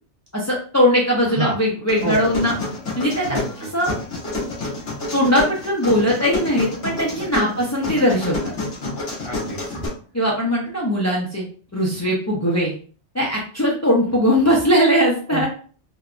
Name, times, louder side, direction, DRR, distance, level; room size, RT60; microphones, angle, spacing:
voice 1, 0.3-2.6 3.0-3.4 3.7-3.9 5.1-8.5 10.1-11.4 11.7-12.7 13.1-15.5, equal, 25° left, -5 dB, 0.3 m, -20 dB
sound 1, 1.9-9.9, left 2 dB, 90° left, 1.4 m, -29 dB
voice 2, 2.0-2.5 3.3-3.7 9.2-9.8 15.3-15.5, right 2 dB, 30° right, -3 dB, 0.9 m, -28 dB
3.3 x 2.2 x 2.4 m, 0.41 s
omnidirectional pair, 1.2 m